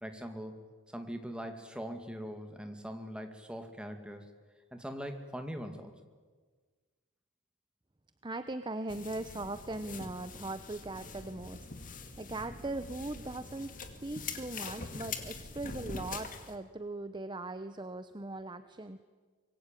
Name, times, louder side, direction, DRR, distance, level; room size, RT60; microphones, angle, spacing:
voice 1, 0.0-0.6 0.9-4.3 4.7-5.9, equal, 5° right, 5 dB, 2.3 m, -41 dB
voice 2, 8.2-11.7 12.2-19.0, right 2 dB, 20° right, 10 dB, 0.8 m, -40 dB
sound 1, 8.9-16.5, left 4 dB, 35° left, 2.4 m, -44 dB
25.0 x 23.0 x 9.1 m, 1.5 s
head